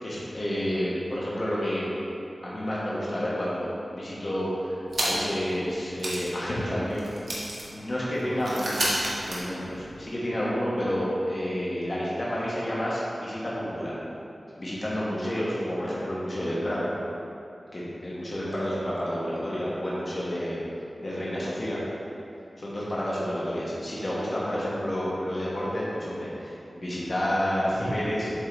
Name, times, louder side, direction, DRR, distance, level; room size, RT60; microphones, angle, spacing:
voice 1, 0.0-1.9 2.4-7.1 7.7-14.0 14.6-16.9 17.7-20.6 21.0-21.8 22.6-28.3, equal, 45° left, -7 dB, 1.3 m, -30 dB
sound 1, 4.9-5.4 5.7-5.8 6.0-10.1, right 1 dB, 85° right, 1.3 m, -32 dB
7.9 x 3.7 x 4.0 m, 2.7 s
wide cardioid pair, 65°, 0 cm